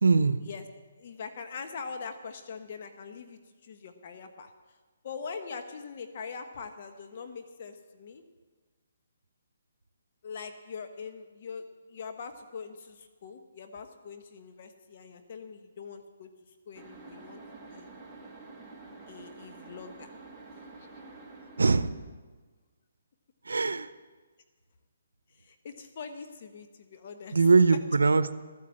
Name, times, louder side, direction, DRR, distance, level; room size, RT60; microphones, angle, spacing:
voice 1, 0.0-0.4 21.6-21.9 23.4-23.9 27.3-28.3, right 4 dB, 85° right, 14 dB, 0.7 m, -22 dB
voice 2, 1.0-4.5 5.0-8.2 10.2-17.4 17.7-17.9 19.1-20.1 25.3-27.4, left 5 dB, 45° left, 7 dB, 1.2 m, -43 dB
sound 1, 16.7-22.1, right 3 dB, 5° right, 1.9 m, -48 dB
13.5 x 9.5 x 7.8 m, 1.4 s
hypercardioid pair, 155°, 0 cm